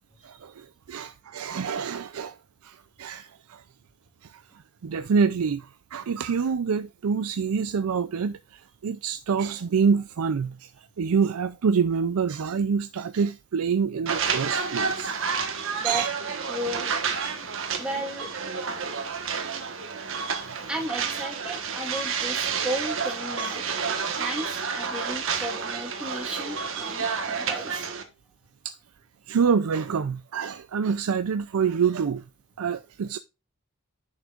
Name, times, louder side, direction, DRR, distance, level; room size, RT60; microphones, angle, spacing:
voice 1, 0.2-2.4 2.6-3.6 4.2-4.4 4.8-10.7 11.0-15.2 15.8-16.1 20.5-20.6 22.5-22.6 23.4-23.6 27.5-27.6 28.6-28.8 29.3-32.2 32.6-33.2, right 6 dB, 90° right, 0.4 m, -27 dB
sound 1, 14.1-28.0, right 5 dB, 65° right, 1.4 m, -30 dB
voice 2, 16.5-16.9 17.8-18.3 20.7-23.6 24.2-27.9, right 1 dB, 5° right, 2.8 m, -34 dB
10.5 x 6.4 x 2.5 m
head